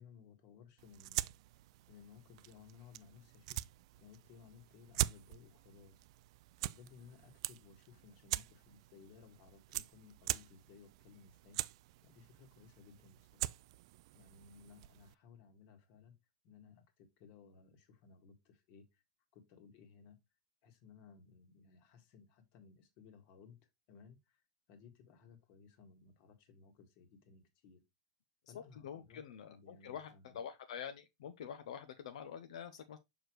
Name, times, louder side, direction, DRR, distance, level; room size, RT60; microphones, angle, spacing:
voice 1, 0.0-1.4 1.9-6.1 6.6-11.6 12.0-13.6 14.1-16.2 16.4-19.0 19.3-20.2 20.6-24.4 24.7-27.8 28.5-29.2 29.5-30.4, left 5 dB, 45° left, 1.6 m, -60 dB
sound 1, 0.8-15.1, right 16 dB, 60° right, 0.3 m, -44 dB
voice 2, 28.8-33.0, left 8 dB, 85° left, 0.7 m, -46 dB
6.2 x 4.9 x 3.1 m
supercardioid pair, 150°, 3 cm